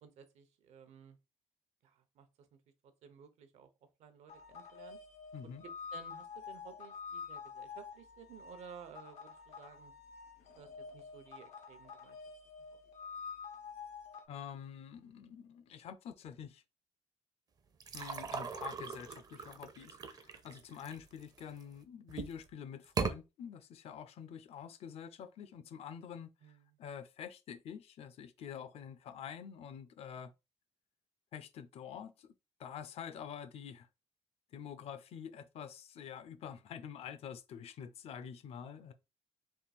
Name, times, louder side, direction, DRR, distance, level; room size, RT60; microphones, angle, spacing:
voice 1, 0.0-1.2 1.8-3.7 4.0-5.0 5.9-9.9 10.6-12.2 12.6-12.8 20.7-20.9 26.4-26.8 38.6-38.9, right 7 dB, 80° right, 0.8 m, -56 dB
sound 1, 4.3-14.2, left 5 dB, 90° left, 0.8 m, -48 dB
voice 2, 5.3-5.6 14.3-16.6 17.9-26.3 26.8-30.3 31.3-32.3 32.6-33.9 34.5-38.9, left 8 dB, 60° left, 0.5 m, -47 dB
sound 2, 17.8-21.6 22.1-22.5 22.8-23.2, right 5 dB, 35° right, 0.5 m, -39 dB
3.6 x 2.4 x 4.2 m
cardioid pair, 130°, 11 cm